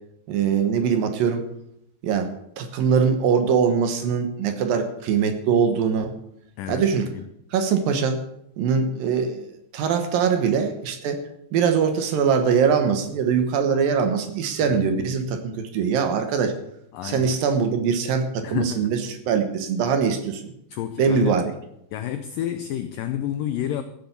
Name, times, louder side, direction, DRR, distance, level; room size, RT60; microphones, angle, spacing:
voice 1, 0.3-1.4 2.0-6.1 6.7-7.1 7.5-8.2 8.6-11.2 11.5-16.5 17.0-19.0 19.3-20.5 21.0-21.5, right 6 dB, 65° right, 7 dB, 2.6 m, -22 dB
voice 2, 6.6-7.3 14.6-14.8 16.9-17.3 18.4-18.9 20.7-21.4 21.9-23.8, left 11 dB, 90° left, 9 dB, 1.9 m, -30 dB
14.5 x 7.6 x 7.1 m, 0.76 s
omnidirectional pair, 4.8 m